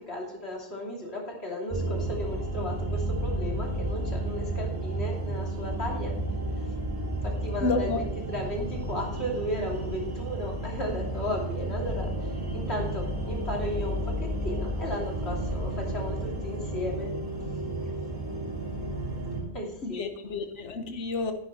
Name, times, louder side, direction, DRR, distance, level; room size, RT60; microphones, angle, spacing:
voice 1, 0.0-6.1 6.6-6.7 7.2-17.1 19.5-20.0, left 1 dB, 65° left, -1 dB, 3.2 m, -35 dB
sound 1, 1.7-19.4, right 1 dB, 15° right, 4.2 m, -32 dB
voice 2, 7.6-8.1 18.7-18.8 19.8-21.3, left 3 dB, 80° left, 7 dB, 1.5 m, -30 dB
10.5 x 9.6 x 4.2 m, 0.80 s
omnidirectional pair, 1.2 m